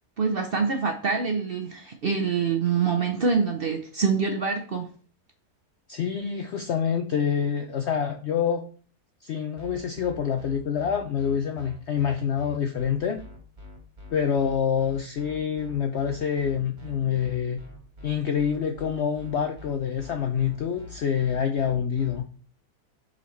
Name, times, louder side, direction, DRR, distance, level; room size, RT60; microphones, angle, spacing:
voice 1, 0.2-4.9, right 5 dB, 55° right, 0.6 m, -25 dB
voice 2, 5.9-8.6 9.2-13.2 14.1-17.6 18.0-22.2, left 7 dB, 70° left, 0.6 m, -26 dB
sound 1, 9.6-22.2, right 1 dB, 30° right, 1.9 m, -44 dB
8.3 x 4.1 x 3.1 m
omnidirectional pair, 1.7 m